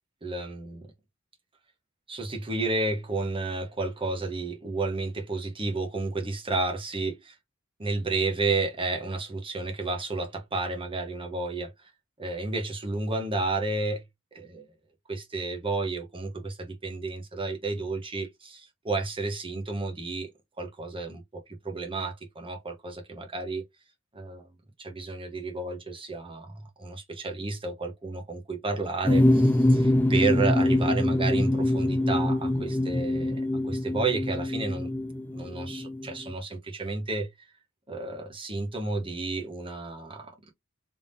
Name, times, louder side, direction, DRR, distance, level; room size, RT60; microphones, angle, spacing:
voice 1, 0.2-0.9 2.1-7.4 7.8-11.9 12.2-14.0 14.3-14.7 15.1-20.3 20.6-23.6 24.1-24.5 24.8-34.9 35.3-37.3 37.9-40.4, right 3 dB, 25° right, 1.0 m, -31 dB
sound 1, 29.0-36.3, left 1 dB, 10° left, 0.4 m, -24 dB
3.5 x 3.5 x 2.6 m
head